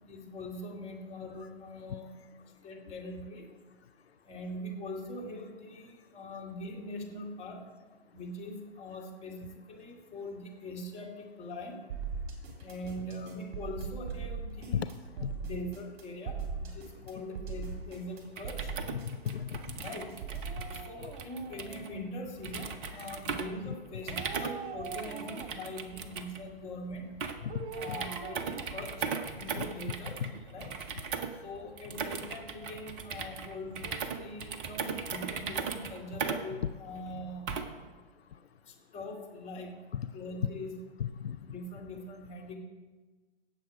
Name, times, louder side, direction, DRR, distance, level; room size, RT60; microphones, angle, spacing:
voice 1, 0.1-2.1 2.4-3.5 4.2-7.7 8.1-11.8 12.6-14.8 15.1-18.7 19.8-20.1 20.7-27.1 27.7-29.0 29.3-30.1 30.5-30.7 31.4-37.6 38.6-39.8 40.1-40.7 41.4-42.6, left 1 dB, 20° left, -1 dB, 2.3 m, -42 dB
sound 1, 11.9-20.6, right 5 dB, 35° right, 3.3 m, -40 dB
sound 2, 18.3-37.9, right 6 dB, 15° right, 0.3 m, -39 dB
voice 2, 18.9-19.6 22.9-23.0 23.7-23.8 27.4-28.0 29.5-29.7 30.0-30.3 30.6-30.7 39.9-40.1 41.0-41.4, left 8 dB, 80° left, 11 dB, 0.6 m, -37 dB
Dog, 20.3-22.4 24.1-25.8 27.5-29.6 29.9-30.0, right 5 dB, 55° right, 1.2 m, -44 dB
16.5 x 7.1 x 4.8 m, 1.3 s
figure-of-eight pair, 120°, 31 cm